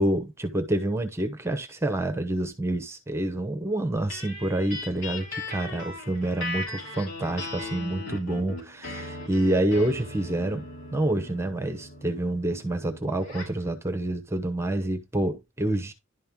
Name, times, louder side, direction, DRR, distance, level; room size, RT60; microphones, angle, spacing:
voice 1, 0.0-15.9, right 1 dB, 15° right, 0.9 m, -28 dB
sound 1, 4.1-13.6, left 2 dB, 75° left, 4.4 m, -39 dB
11.0 x 4.3 x 3.6 m
head